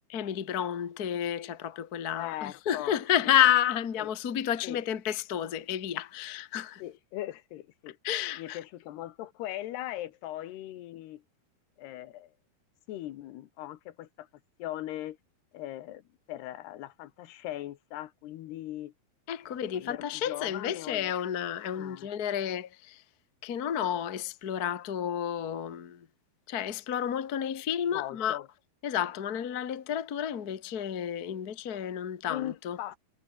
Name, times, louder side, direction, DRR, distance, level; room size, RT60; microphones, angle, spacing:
voice 1, 0.1-6.8 8.0-8.6 19.3-23.0 23.4-26.1 26.5-28.4 28.8-32.8, left 10 dB, 65° left, 0.9 m, -30 dB
voice 2, 2.1-3.0 4.0-4.1 4.6-4.9 6.8-8.0 8.4-11.2 11.8-12.3 12.9-14.3 14.6-15.2 15.5-18.9 19.4-21.1 21.7-22.1 27.9-28.5 32.3-33.0, left 14 dB, 85° left, 3.4 m, -39 dB
omnidirectional pair, 4.6 m